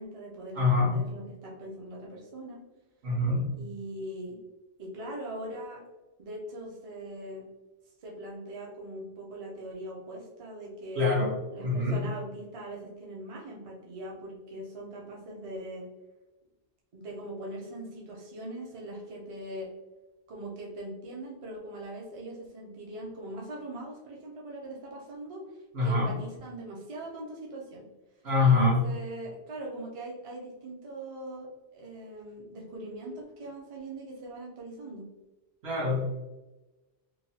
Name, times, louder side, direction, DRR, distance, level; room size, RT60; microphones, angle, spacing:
voice 1, 0.0-2.6 3.6-4.4 4.8-5.8 6.2-7.4 8.0-11.0 11.5-15.9 16.9-19.7 20.3-25.6 25.8-27.9 28.4-35.1, right 1 dB, 40° right, -2 dB, 0.6 m, -41 dB
voice 2, 0.5-0.9 3.0-3.4 10.9-11.3 11.6-12.0 25.7-26.1 28.2-28.8 35.6-36.0, left 3 dB, 70° right, -5 dB, 1.3 m, -24 dB
3.1 x 2.2 x 2.7 m, 1.1 s
omnidirectional pair, 1.1 m